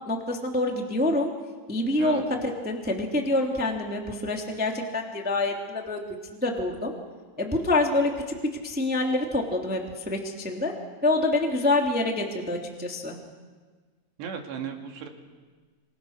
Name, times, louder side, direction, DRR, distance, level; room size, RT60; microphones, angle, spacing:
voice 1, 0.1-1.3 1.7-6.0 6.4-6.9 7.4-8.3 8.6-9.8 10.0-10.7 11.0-13.2, left 2 dB, 5° right, 1 dB, 1.3 m, -26 dB
voice 2, 14.2-15.1, right 7 dB, 65° right, 3 dB, 4.3 m, -35 dB
27.5 x 26.0 x 6.6 m, 1.4 s
omnidirectional pair, 5.5 m